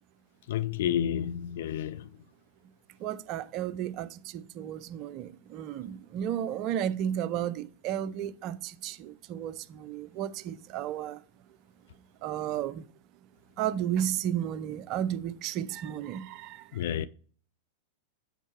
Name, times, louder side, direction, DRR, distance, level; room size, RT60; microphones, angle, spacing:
voice 1, 0.5-2.1 16.7-17.1, left 10 dB, 60° left, 0.4 m, -30 dB
voice 2, 3.0-11.2 12.2-12.8 13.6-16.8, right 10 dB, 45° right, 0.5 m, -33 dB
8.1 x 5.3 x 3.0 m
figure-of-eight pair, 95°, 0 cm